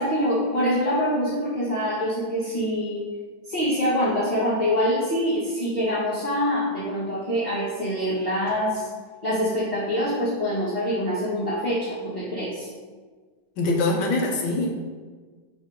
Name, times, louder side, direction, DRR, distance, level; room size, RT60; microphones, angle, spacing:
voice 1, 0.0-3.0 3.5-8.9 9.2-12.7, equal, 25° left, -11 dB, 1.5 m, -25 dB
voice 2, 13.6-14.8, left 2 dB, 70° left, 1 dB, 1.5 m, -23 dB
5.9 x 3.7 x 5.0 m, 1.5 s
omnidirectional pair, 2.1 m